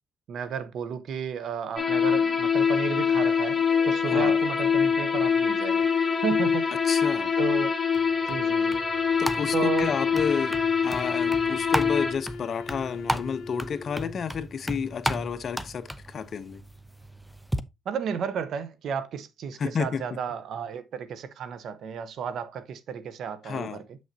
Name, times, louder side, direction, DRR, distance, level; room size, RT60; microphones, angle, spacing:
voice 1, 0.3-3.6 3.9-5.9 6.2-6.7 7.4-7.7 8.3-8.8 9.5-9.9 17.8-24.0, right 7 dB, 70° right, 0.9 m, -33 dB
sound 1, 1.8-12.1, left 6 dB, 25° left, 1.6 m, -24 dB
voice 2, 4.1-4.4 6.8-7.3 9.2-10.5 10.8-16.6 19.6-20.2 23.4-23.8, left 6 dB, 50° left, 0.7 m, -31 dB
Wind instrument woodwind instrument, 5.1-14.3, left 4 dB, 80° left, 1.2 m, -40 dB
sound 2, 7.9-17.6, equal, ahead, 0.6 m, -35 dB
7.2 x 6.3 x 2.8 m
cardioid pair, 90°, 0 cm